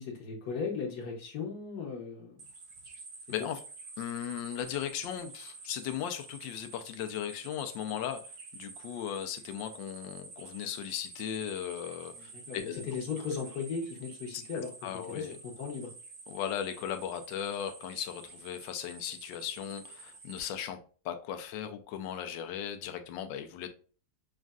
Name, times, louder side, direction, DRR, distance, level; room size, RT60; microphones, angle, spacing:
voice 1, 0.0-2.4 3.4-3.5 12.2-14.7 15.1-15.9, left 5 dB, 65° left, 1 dB, 1.3 m, -37 dB
sound 1, 2.4-20.4, right 3 dB, 55° right, 1.0 m, -49 dB
voice 2, 3.3-3.6 4.0-8.2 8.5-12.8 14.3-14.4 14.8-15.3 16.3-20.8 21.0-23.7, left 9 dB, 85° left, 8 dB, 1.3 m, -37 dB
6.2 x 2.4 x 2.3 m, 0.39 s
omnidirectional pair, 2.0 m